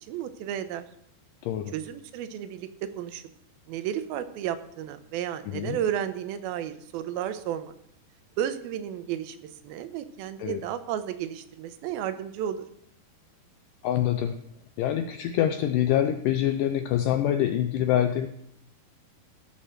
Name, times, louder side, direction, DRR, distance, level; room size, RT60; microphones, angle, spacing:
voice 1, 0.0-0.9 1.7-3.2 3.7-7.7 8.4-12.7, right 10 dB, 85° right, 11 dB, 2.5 m, -33 dB
voice 2, 1.4-1.7 5.5-5.8 10.4-10.6 13.8-14.4 14.8-18.3, left 11 dB, 85° left, 8 dB, 1.9 m, -25 dB
15.5 x 5.6 x 6.4 m, 0.71 s
omnidirectional pair, 4.4 m